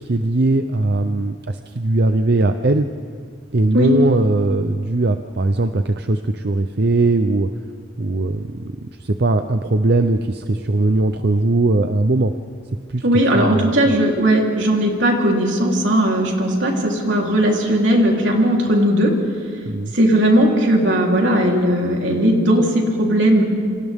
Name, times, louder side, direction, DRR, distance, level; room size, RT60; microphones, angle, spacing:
voice 1, 0.0-2.9 3.5-7.5 8.0-12.3 12.9-13.9 19.7-19.9, right 2 dB, 60° right, 8 dB, 0.7 m, -19 dB
voice 2, 13.0-19.1 19.9-23.4, right 1 dB, 85° right, -1 dB, 3.7 m, -17 dB
28.5 x 26.0 x 3.7 m, 2.1 s
head